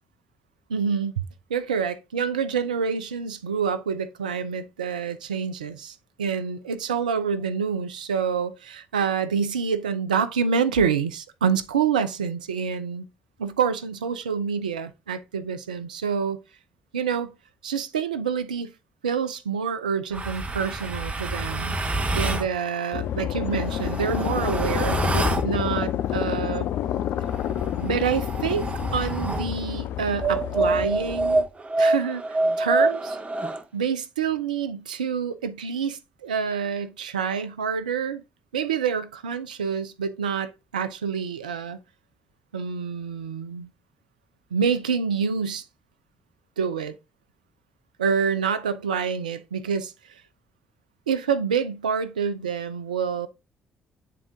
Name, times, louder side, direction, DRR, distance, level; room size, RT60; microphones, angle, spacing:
voice 1, 0.7-1.2 1.5-13.1 13.4-16.4 16.9-17.3 17.6-18.7 19.0-21.8 22.1-26.7 27.8-31.5 31.8-33.2 33.7-38.2 38.5-41.8 42.5-43.7 44.5-45.6 46.6-47.0 48.0-49.9 51.1-53.3, right 6 dB, 85° right, 0.5 m, -27 dB
sound 1, 20.1-22.5 23.5-25.5 27.1-29.5 30.2-33.6, right 2 dB, 30° right, 1.0 m, -26 dB
sound 2, 22.9-30.9, left 11 dB, 60° left, 0.5 m, -29 dB
9.0 x 3.7 x 3.6 m
figure-of-eight pair, 45°, 4 cm